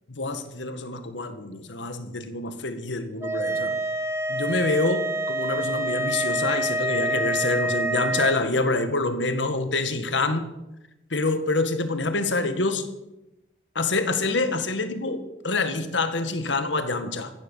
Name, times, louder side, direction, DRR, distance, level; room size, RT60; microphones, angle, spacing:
voice 1, 0.2-3.8 4.3-10.5 11.1-12.9 13.8-17.3, left 3 dB, 85° left, 9 dB, 1.8 m, -26 dB
sound 1, 3.2-8.4, right 1 dB, 15° right, 0.9 m, -27 dB
15.0 x 11.0 x 7.4 m, 0.93 s
head